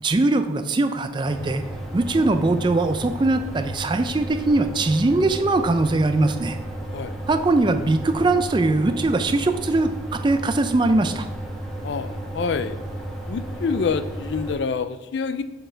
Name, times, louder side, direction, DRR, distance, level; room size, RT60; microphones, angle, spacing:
voice 1, 0.0-1.6 1.9-6.6 7.3-11.3, right 2 dB, 25° right, 8 dB, 0.3 m, -21 dB
sound 1, 1.2-14.5, right 1 dB, ahead, 1.0 m, -33 dB
voice 2, 11.8-12.8 13.3-15.4, left 5 dB, 60° left, 12 dB, 0.4 m, -27 dB
7.7 x 4.2 x 4.5 m, 1.1 s
head